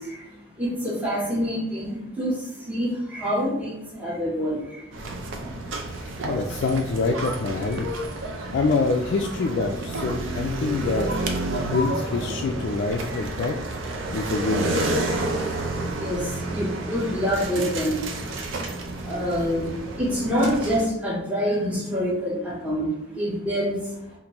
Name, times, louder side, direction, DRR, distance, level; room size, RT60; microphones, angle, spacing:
voice 1, 0.0-4.9 5.4-6.4 7.7-7.8 8.4-8.5 16.0-18.0 18.6-18.7 19.0-22.9 23.1-24.0, equal, 10° right, -8 dB, 0.9 m, -27 dB
sound 1, 4.9-20.9, right 2 dB, 80° right, 0.5 m, -30 dB
voice 2, 5.9-7.9 8.5-11.1 11.6-13.6 14.1-14.8, left 4 dB, 60° left, 2 dB, 0.3 m, -26 dB
5.1 x 2.6 x 2.9 m, 0.85 s
head